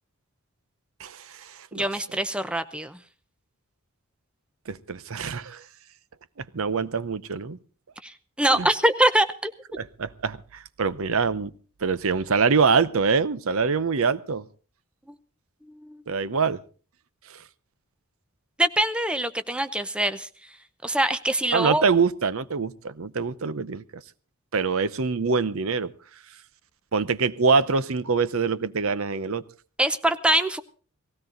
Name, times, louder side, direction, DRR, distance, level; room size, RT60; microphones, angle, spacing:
voice 1, 1.0-1.9 4.7-5.6 6.5-7.6 8.5-8.7 9.7-11.5 11.8-14.4 16.1-16.6 17.3-17.4 21.5-23.8 24.5-25.9 26.9-29.4, right 5 dB, 65° right, 16 dB, 0.7 m, -24 dB
voice 2, 1.7-3.0 8.0-9.5 15.8-16.0 18.6-20.3 20.8-21.8 29.8-30.6, right 1 dB, 5° right, 10 dB, 0.7 m, -24 dB
18.5 x 16.0 x 3.9 m, 0.38 s
head